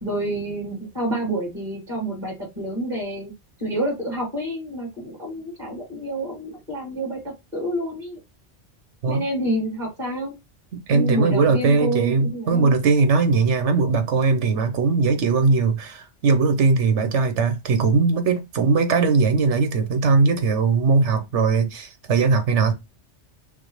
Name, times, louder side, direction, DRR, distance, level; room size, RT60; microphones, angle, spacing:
voice 1, 0.0-3.3 3.6-7.2 7.5-8.2 9.1-10.3 10.9-12.7, right 1 dB, 40° right, 2.6 m, -28 dB
voice 2, 10.7-22.7, right 4 dB, 75° right, 1.2 m, -20 dB
5.7 x 2.0 x 3.2 m
omnidirectional pair, 1.2 m